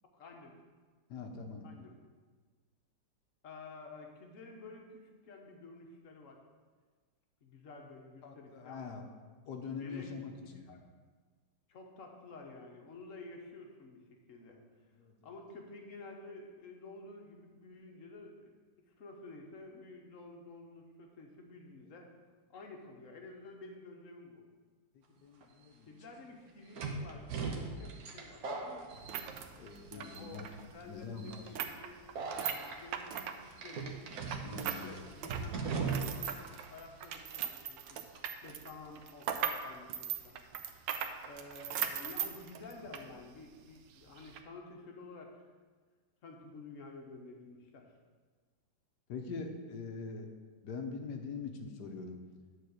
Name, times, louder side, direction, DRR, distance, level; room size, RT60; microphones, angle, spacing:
voice 1, 0.1-0.6 1.6-1.9 3.4-6.4 7.4-9.0 9.8-10.1 10.4-10.8 11.7-14.6 15.2-18.5 19.0-22.1 22.5-24.4 25.9-28.4 29.9-30.5 30.7-32.0 32.7-34.0 34.6-36.4 36.7-38.0 38.4-40.4 41.2-45.4 46.2-47.9, left 3 dB, 50° left, 2 dB, 1.3 m, -51 dB
voice 2, 1.1-1.7 8.2-9.1 9.5-10.6 14.5-14.6 14.9-15.1 24.9-25.9 28.9-29.2 29.5-30.6 30.8-31.4 34.4-34.9 49.1-50.3 50.6-52.2, left 4 dB, 65° left, 4 dB, 1.4 m, -43 dB
sound 1, 25.4-25.5 26.7-29.7 30.0-30.5 31.2-31.4 32.1-32.8 33.6-36.3 36.6-36.7 37.9-38.2, right 4 dB, 60° right, 1.3 m, -39 dB
sound 2, 28.9-34.9 35.1-43.1 43.4-43.5 44.2-44.4, right 9 dB, 80° right, 1.3 m, -39 dB
9.8 x 4.5 x 6.5 m, 1.4 s
omnidirectional pair, 2.0 m